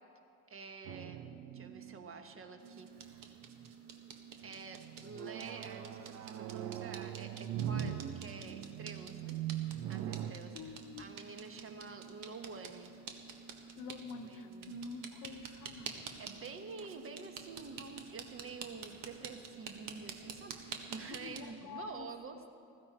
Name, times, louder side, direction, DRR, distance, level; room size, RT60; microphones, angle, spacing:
voice 1, 0.5-2.9 4.4-9.4 9.9-12.9 14.2-14.8 16.2-22.5, right 4 dB, 35° right, 6 dB, 1.4 m, -48 dB
sound 1, 0.8-2.6 3.2-3.7 4.4-10.3, right 10 dB, 85° right, 0.8 m, -41 dB
sound 2, 2.6-21.4, right 6 dB, 60° right, 1.5 m, -49 dB
voice 2, 10.5-11.1 13.8-15.9 21.2-22.1, left 4 dB, 60° left, 8 dB, 1.1 m, -47 dB
15.0 x 14.0 x 4.3 m, 2.7 s
supercardioid pair, 95°, 37 cm